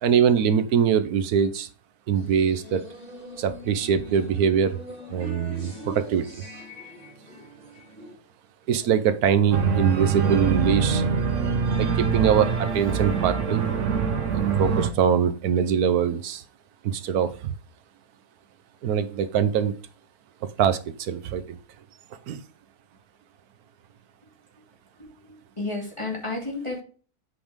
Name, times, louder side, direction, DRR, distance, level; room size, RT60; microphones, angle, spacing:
voice 1, 0.0-1.7 2.1-2.8 3.4-4.8 5.1-6.4 8.7-11.0 11.8-13.6 14.3-16.4 16.8-17.4 18.8-19.7 20.4-21.6 22.3-22.4, right 8 dB, 90° right, 11 dB, 1.3 m, -23 dB
sound 1, 2.1-8.1, left 1 dB, 40° right, 3.7 m, -42 dB
Organ, 9.5-14.9, right 5 dB, 60° right, 1.2 m, -24 dB
voice 2, 25.6-26.8, left 2 dB, 20° left, -1 dB, 2.8 m, -31 dB
8.2 x 5.0 x 3.6 m, 0.39 s
omnidirectional pair, 1.5 m